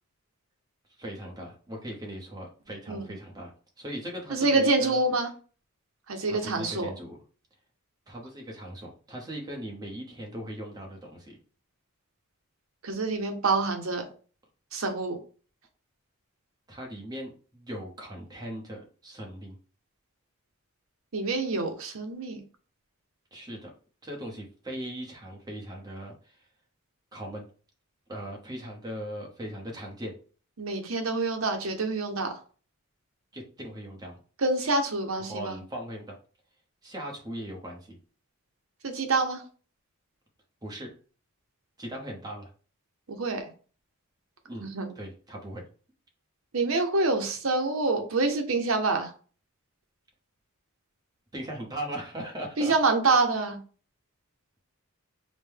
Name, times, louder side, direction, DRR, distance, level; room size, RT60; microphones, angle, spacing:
voice 1, 0.9-5.0 6.2-7.2 8.1-11.4 16.7-19.6 23.3-23.7 24.0-26.5 27.1-27.4 28.1-30.1 33.3-34.2 35.3-36.2 36.8-38.0 40.6-40.9 41.8-42.5 44.4-44.7 44.9-45.6 51.3-52.7, right 1 dB, 20° right, -1 dB, 0.9 m, -39 dB
voice 2, 4.3-5.3 6.1-6.9 12.8-14.0 14.7-15.2 21.1-22.4 30.6-32.3 34.4-35.6 38.8-39.4 43.1-43.4 44.6-44.9 46.5-49.1 52.6-53.6, right 3 dB, 70° right, 5 dB, 0.8 m, -26 dB
5.2 x 2.2 x 3.4 m, 0.40 s
head